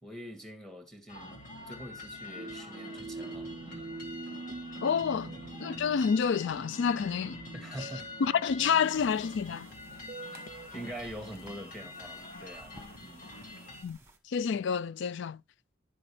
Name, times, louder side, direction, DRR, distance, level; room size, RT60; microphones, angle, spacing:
voice 1, 0.0-3.9 7.5-8.1 10.3-10.4 10.7-13.3, equal, 5° left, 2.0 m, -44 dB
sound 1, 1.1-13.8, left 2 dB, 45° left, 2.4 m, -46 dB
sound 2, 2.4-10.7, right 3 dB, 40° right, 0.4 m, -45 dB
voice 2, 4.8-5.3 5.6-7.4 8.2-9.7 13.8-14.0 14.3-15.4, left 6 dB, 65° left, 0.4 m, -28 dB
sound 3, 8.8-14.2, right 2 dB, 15° right, 1.7 m, -58 dB
11.0 x 6.8 x 3.3 m
head